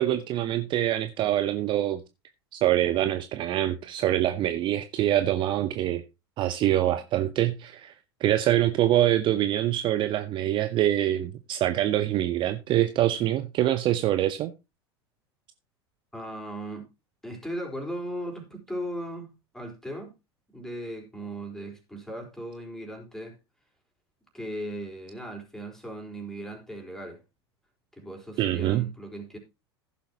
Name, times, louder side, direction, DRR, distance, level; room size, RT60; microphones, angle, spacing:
voice 1, 0.0-2.0 2.5-6.0 6.4-7.9 8.2-14.5 28.4-28.9, right 13 dB, 35° right, 0.7 m, -25 dB
voice 2, 16.1-16.9 17.2-20.1 20.5-23.4 24.3-27.2 27.9-29.4, right 1 dB, 5° left, 4.2 m, -37 dB
15.0 x 7.2 x 2.9 m
figure-of-eight pair, 80°, 14 cm